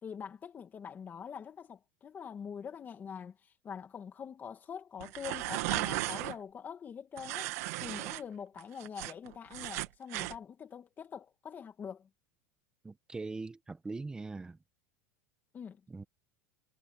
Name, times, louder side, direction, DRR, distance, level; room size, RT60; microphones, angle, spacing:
voice 1, 0.0-12.1 15.5-15.8, left 7 dB, 20° left, 2.3 m, -44 dB
sound 1, 5.0-6.3 7.2-8.2 8.6-10.4, right 19 dB, 70° right, 1.8 m, -36 dB
voice 2, 12.8-14.6 15.9-16.0, right 3 dB, 10° right, 1.1 m, -41 dB
supercardioid pair, 150°, 8 cm